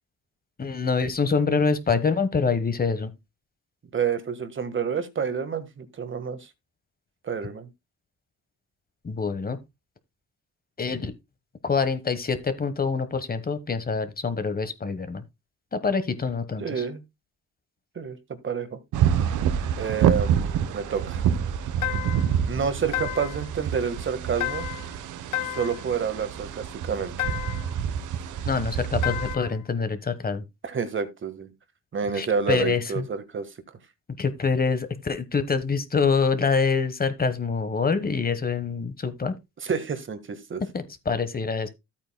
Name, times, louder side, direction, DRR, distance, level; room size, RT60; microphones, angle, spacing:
voice 1, 0.6-3.1 9.0-9.6 10.8-11.1 11.6-15.2 15.7-16.8 28.4-30.4 32.1-33.1 34.2-39.3 40.7-41.7, left 5 dB, 30° left, 1.3 m, -25 dB
voice 2, 3.9-6.5 7.2-7.7 16.6-17.0 17.9-18.2 18.4-18.8 19.8-21.3 22.5-24.7 25.4-27.4 30.6-31.5 31.9-33.5 39.6-40.6, right 6 dB, 40° right, 1.6 m, -29 dB
sound 1, 18.9-29.3, right 8 dB, 80° right, 1.0 m, -27 dB
sound 2, 21.8-22.4 22.9-23.5 24.4-24.9 25.3-25.9 27.2-27.7 29.0-29.6, left 15 dB, 75° left, 0.6 m, -31 dB
13.0 x 8.8 x 2.2 m
cardioid pair, 90°, 30 cm